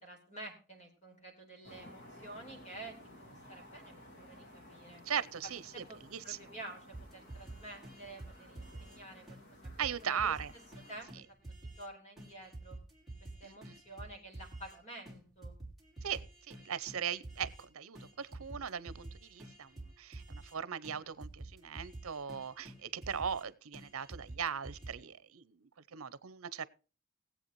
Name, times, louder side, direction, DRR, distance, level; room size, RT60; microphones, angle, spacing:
voice 1, 0.0-5.0 5.7-10.3 10.9-12.8 13.2-15.6, right 1 dB, 35° left, 4.2 m, -50 dB
sound 1, 1.6-11.0, left 1 dB, 55° left, 2.2 m, -56 dB
voice 2, 5.0-5.8 6.1-6.4 9.8-10.5 13.4-13.8 16.0-26.7, right 7 dB, 80° right, 0.7 m, -39 dB
sound 2, 6.9-9.0 9.3-9.4 9.6-11.9 12.2-14.8 15.1-17.7 18.0-20.6 20.8-21.0 21.2-23.5 23.7-24.9, right 2 dB, ahead, 3.0 m, -49 dB
19.5 x 8.0 x 3.1 m
head